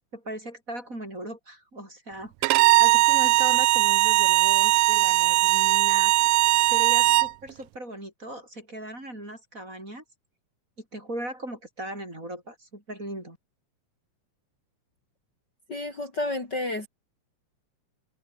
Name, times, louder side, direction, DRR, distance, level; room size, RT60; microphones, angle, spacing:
voice 1, 0.1-6.1 6.7-10.0 10.8-13.4, right 1 dB, 20° right, 7.7 m, -38 dB
Bowed string instrument, 2.4-7.3, right 20 dB, 80° right, 2.0 m, -20 dB
voice 2, 15.7-16.9, left 2 dB, 30° left, 4.5 m, -30 dB
omnidirectional pair, 4.0 m